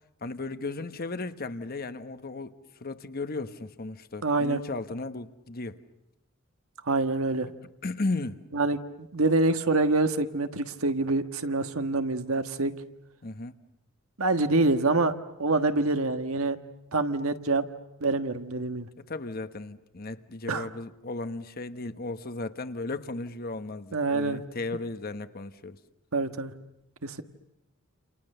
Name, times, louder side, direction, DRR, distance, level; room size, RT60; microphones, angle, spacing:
voice 1, 0.2-2.5 2.8-5.8 7.8-8.4 13.2-13.6 19.1-25.8, left 2 dB, 45° left, 1.1 m, -35 dB
voice 2, 4.2-4.6 6.9-7.5 8.5-8.8 9.1-12.7 14.2-15.1 15.4-16.6 16.9-17.6 18.0-18.9 20.5-20.7 23.9-24.4 26.1-26.5 27.0-27.2, right 3 dB, 80° right, 1.5 m, -26 dB
29.0 x 28.5 x 6.7 m
head